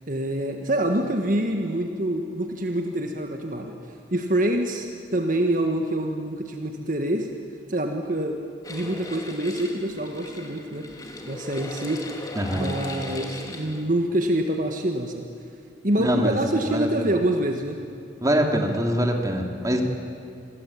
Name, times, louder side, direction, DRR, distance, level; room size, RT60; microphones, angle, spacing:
voice 1, 0.0-3.7 4.1-4.9 5.1-7.3 7.7-8.4 8.7-10.9 11.3-12.0 12.5-15.3 15.8-17.8, right 1 dB, 45° right, 4 dB, 1.7 m, -26 dB
sound 1, 8.6-13.8, left 1 dB, 20° left, 2.6 m, -37 dB
voice 2, 12.3-12.7 16.0-16.4 16.7-16.9 18.2-19.8, equal, 20° right, 3 dB, 2.8 m, -23 dB
29.0 x 23.0 x 8.7 m, 2.7 s
head